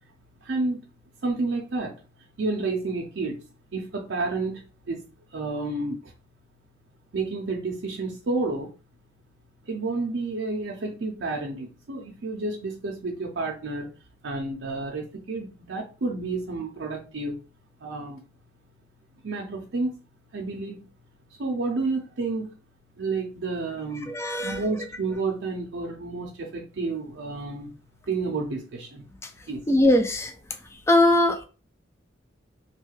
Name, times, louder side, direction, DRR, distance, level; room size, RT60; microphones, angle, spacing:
voice 1, 0.4-0.9 1.2-1.9 2.4-3.4 3.7-5.0 5.3-6.1 7.1-8.7 9.7-13.9 14.2-17.4 17.8-18.2 19.2-20.0 20.3-20.9 21.4-22.5 23.0-24.1 24.4-27.7 28.1-29.0 29.5-29.6, right 3 dB, 70° right, 0.5 m, -30 dB
voice 2, 24.1-24.6 29.2-29.3 29.7-30.3 30.9-31.4, left 1 dB, 15° left, 0.3 m, -20 dB
2.6 x 2.3 x 3.1 m
head